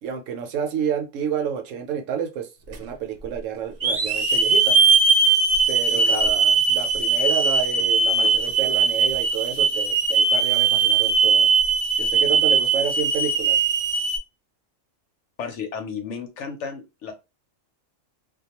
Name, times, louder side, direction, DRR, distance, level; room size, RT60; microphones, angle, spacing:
voice 1, 0.0-4.8 5.7-11.5 12.0-13.6, right 8 dB, 80° right, 1.0 m, -30 dB
Hiss / Alarm, 2.7-2.8 3.8-14.2, right 4 dB, 55° right, 0.7 m, -20 dB
voice 2, 5.9-6.3 8.2-8.3 15.4-17.1, left 6 dB, 70° left, 0.9 m, -33 dB
2.3 x 2.2 x 2.8 m
omnidirectional pair, 1.3 m